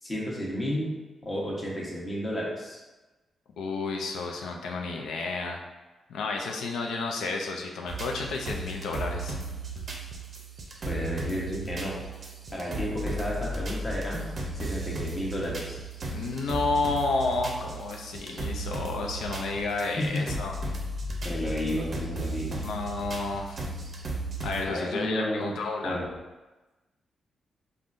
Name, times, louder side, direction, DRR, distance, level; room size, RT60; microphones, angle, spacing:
voice 1, 0.0-1.0 1.2-2.8 10.9-12.0 12.5-14.2 14.6-15.8 20.0-20.4 21.2-22.6 24.6-25.6 25.8-26.1, equal, 35° left, -4 dB, 0.9 m, -32 dB
voice 2, 3.6-5.6 6.1-9.4 16.1-20.6 22.6-23.6 24.4-26.0, left 3 dB, 85° left, 1 dB, 0.3 m, -31 dB
sound 1, 7.9-24.7, right 2 dB, 50° right, 0.5 m, -35 dB
3.6 x 2.2 x 2.5 m, 1.1 s
cardioid pair, 65°, 0 cm